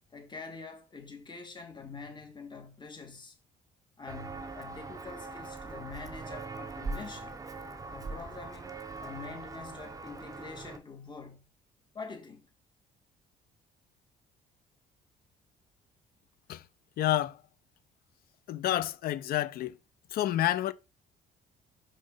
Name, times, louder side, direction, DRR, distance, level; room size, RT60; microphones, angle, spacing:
voice 1, 0.1-3.4 4.0-7.4 7.9-11.4 11.9-12.5, left 4 dB, 25° left, 2.1 m, -45 dB
Walk footsteps, 4.1-10.8, right 3 dB, 20° right, 0.9 m, -41 dB
voice 2, 17.0-17.4 18.5-19.8 20.1-20.7, left 13 dB, 65° left, 0.6 m, -29 dB
5.2 x 5.1 x 4.0 m
cardioid pair, 110°, 17 cm